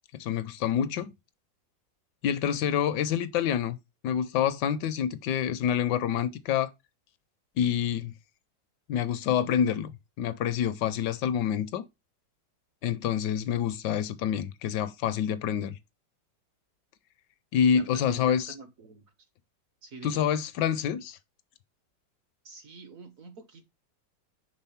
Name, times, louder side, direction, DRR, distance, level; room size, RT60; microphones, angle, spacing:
voice 1, 0.1-1.1 2.2-3.8 4.0-6.7 7.6-8.1 8.9-11.8 12.8-15.8 17.5-18.5 20.0-21.2, left 9 dB, 75° left, 1.1 m, -27 dB
voice 2, 17.7-19.0 19.8-20.2 22.4-23.6, right 4 dB, 60° right, 0.9 m, -46 dB
5.4 x 3.6 x 5.6 m
omnidirectional pair, 2.0 m